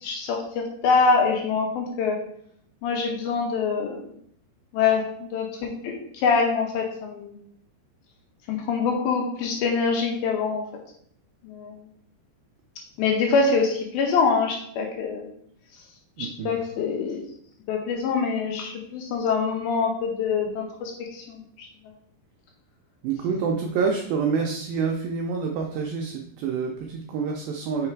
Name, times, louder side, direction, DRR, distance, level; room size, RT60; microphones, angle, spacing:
voice 1, 0.0-2.2 2.8-4.1 4.7-7.4 8.5-10.6 11.4-11.7 13.0-15.3 16.2-17.2 17.7-21.4, left 5 dB, 80° left, 2 dB, 2.3 m, -25 dB
voice 2, 16.2-16.5 23.0-27.9, right 5 dB, 85° right, 1 dB, 2.0 m, -27 dB
5.7 x 3.9 x 4.5 m, 0.68 s
omnidirectional pair, 4.8 m